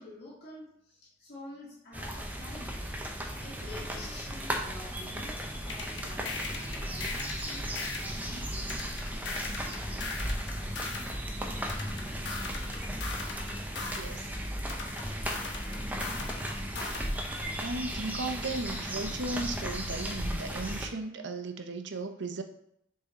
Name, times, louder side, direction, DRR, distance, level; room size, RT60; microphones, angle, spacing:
voice 1, 0.0-2.9 3.4-5.4 5.6-8.8, left 1 dB, 60° left, -6 dB, 1.8 m, -47 dB
sound 1, 1.9-20.9, equal, 10° right, 0.7 m, -36 dB
sound 2, 5.7-8.2 8.7-11.1 11.7-14.1 14.7-17.1, left 4 dB, 75° left, 1.2 m, -39 dB
voice 2, 13.9-14.3 17.6-22.4, right 2 dB, 80° right, 6 dB, 0.7 m, -36 dB
6.6 x 3.9 x 4.1 m, 0.74 s
head